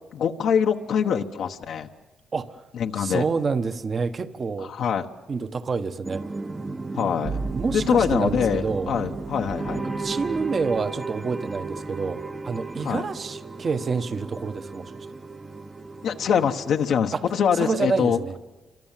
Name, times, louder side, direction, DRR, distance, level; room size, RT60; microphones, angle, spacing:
voice 1, 0.1-1.9 2.7-3.3 4.6-5.1 6.9-7.4 7.7-9.9 12.8-13.0 16.0-18.2, left 7 dB, 70° left, 4 dB, 1.1 m, -24 dB
voice 2, 3.0-4.7 5.3-6.2 7.5-8.9 9.7-14.9 17.1-17.2 17.6-18.3, right 4 dB, 40° right, 10 dB, 1.3 m, -28 dB
sound 1, 6.0-16.9, right 3 dB, 25° right, 1.0 m, -34 dB
sound 2, 7.2-10.8, right 5 dB, 90° right, 5.5 m, -36 dB
29.0 x 25.5 x 7.5 m, 1.2 s
cardioid pair, 90°, 0 cm